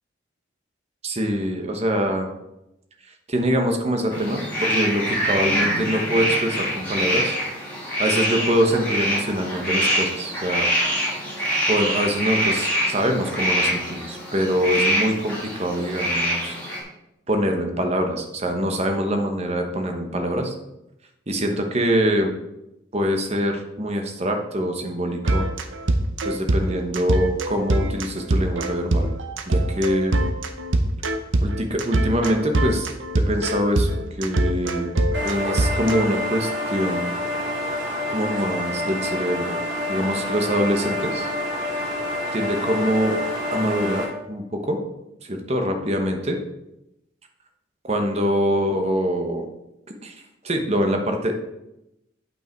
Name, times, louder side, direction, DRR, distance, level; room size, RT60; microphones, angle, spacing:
voice 1, 1.0-2.3 3.3-7.4 8.0-10.7 11.7-16.6 17.3-20.5 21.3-22.3 22.9-25.4 26.2-29.1 29.5-30.1 31.4-32.9 33.2-34.9 35.2-37.1 38.1-39.6 39.9-41.3 42.3-43.2 43.5-44.8 45.2-46.4 47.8-49.5 50.0-50.2 50.4-51.4, equal, 35° right, 4 dB, 1.2 m, -24 dB
sound 1, 4.1-16.8, equal, 10° left, 3.1 m, -25 dB
sound 2, 25.3-36.0, right 1 dB, 85° right, 0.8 m, -23 dB
sound 3, 35.1-44.0, left 1 dB, 60° right, 2.8 m, -28 dB
8.5 x 5.8 x 4.6 m, 0.88 s
head